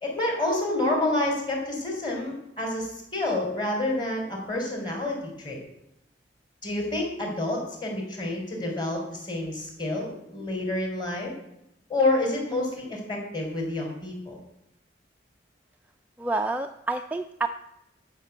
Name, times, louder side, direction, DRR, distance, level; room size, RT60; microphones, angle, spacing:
voice 1, 0.0-5.6 6.6-11.3 11.9-14.4, left 2 dB, 25° left, 0 dB, 3.6 m, -28 dB
voice 2, 16.2-17.5, right 3 dB, 10° right, 6 dB, 0.3 m, -28 dB
12.0 x 5.8 x 8.1 m, 0.83 s
head